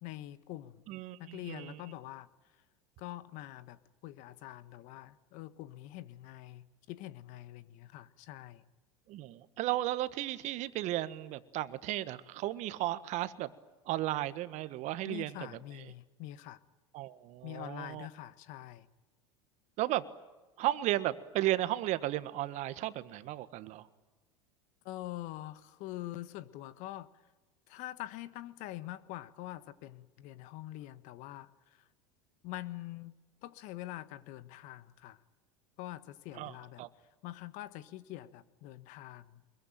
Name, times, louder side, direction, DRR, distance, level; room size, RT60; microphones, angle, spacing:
voice 1, 0.0-0.8 1.2-2.3 3.0-8.6 15.0-16.6 17.4-18.9 24.8-27.1 27.7-31.9 32.4-33.1 33.4-35.2 35.8-36.8 37.2-39.4, left 15 dB, 55° left, 14 dB, 1.5 m, -45 dB
voice 2, 0.9-1.8 9.1-13.5 13.9-15.5 16.9-18.1 19.8-20.1 20.6-23.8 36.4-36.5 36.8-36.9, right 15 dB, 50° right, 13 dB, 1.6 m, -34 dB
24.0 x 22.5 x 9.1 m, 1.2 s
hypercardioid pair, 85°, 15 cm